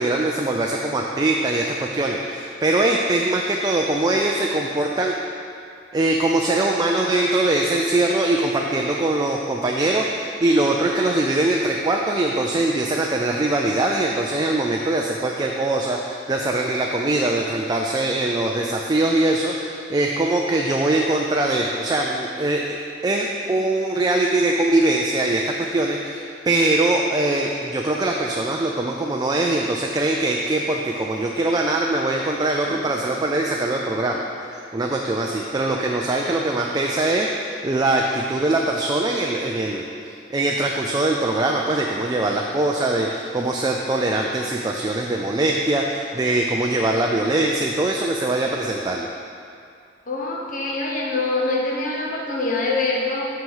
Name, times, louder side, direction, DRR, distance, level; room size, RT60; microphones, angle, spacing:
voice 1, 0.0-5.1 5.9-22.8 23.0-34.2 34.5-39.9 40.3-49.1, right 2 dB, 20° right, 0 dB, 0.4 m, -22 dB
voice 2, 50.1-53.3, left 2 dB, 45° left, -2 dB, 1.0 m, -25 dB
5.9 x 5.9 x 5.5 m, 2.5 s
head